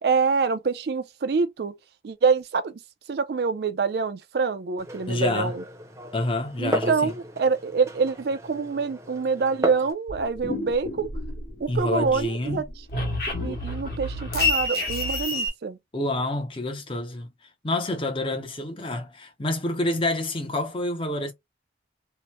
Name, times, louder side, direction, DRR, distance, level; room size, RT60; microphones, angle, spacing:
voice 1, 0.0-1.7 2.0-2.8 3.1-5.6 6.6-11.1 11.6-12.7 13.4-15.8, right 5 dB, 60° right, 0.4 m, -26 dB
Glass, 4.8-9.9, right 1 dB, 15° right, 0.6 m, -34 dB
voice 2, 5.1-5.6 6.1-7.1 11.7-12.6 15.9-17.3 17.6-21.3, left 1 dB, 30° left, 0.6 m, -28 dB
sound 1, 10.1-11.8 12.1-15.5, left 2 dB, 55° left, 1.1 m, -28 dB
2.9 x 2.1 x 3.0 m
head